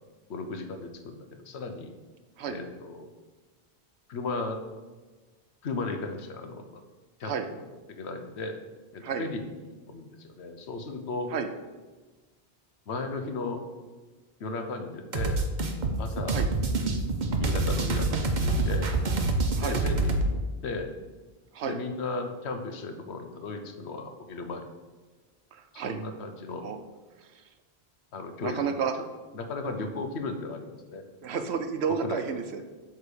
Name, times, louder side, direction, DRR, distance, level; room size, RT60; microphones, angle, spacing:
voice 1, 0.3-1.9 2.5-3.1 4.1-4.6 5.6-6.8 7.2-7.3 7.9-8.6 8.9-11.3 12.9-13.7 14.4-15.5 16.0-16.4 17.3-19.0 19.6-20.9 21.7-24.7 25.7-26.7 28.1-28.8 29.3-31.0 31.3-31.6 32.0-32.5, left 3 dB, 85° left, 6 dB, 1.1 m, -36 dB
sound 1, 15.1-20.3, right 2 dB, 50° right, 0.9 m, -26 dB
voice 2, 25.5-26.0 26.6-26.8 27.2-27.5 28.4-28.9 31.2-32.6, right 6 dB, 80° right, 8 dB, 0.9 m, -31 dB
8.2 x 3.6 x 6.8 m, 1.3 s
omnidirectional pair, 1.1 m